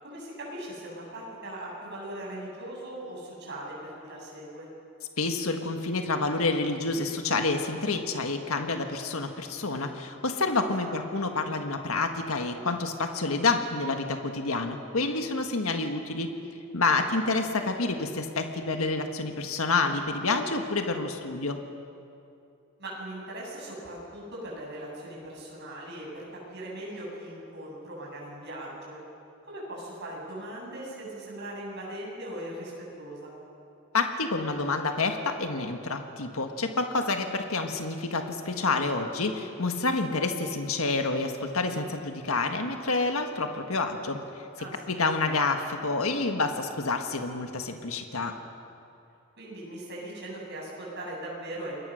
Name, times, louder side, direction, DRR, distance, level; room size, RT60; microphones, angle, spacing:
voice 1, 0.0-4.7 10.8-11.0 16.9-17.1 22.8-29.0 29.4-33.3 44.6-45.0 49.4-51.9, right 1 dB, 55° right, -4 dB, 8.0 m, -39 dB
voice 2, 5.2-16.3 16.7-21.6 33.9-44.2 44.9-48.3, left 3 dB, 80° left, 5 dB, 1.6 m, -28 dB
28.5 x 22.0 x 6.5 m, 2.6 s
head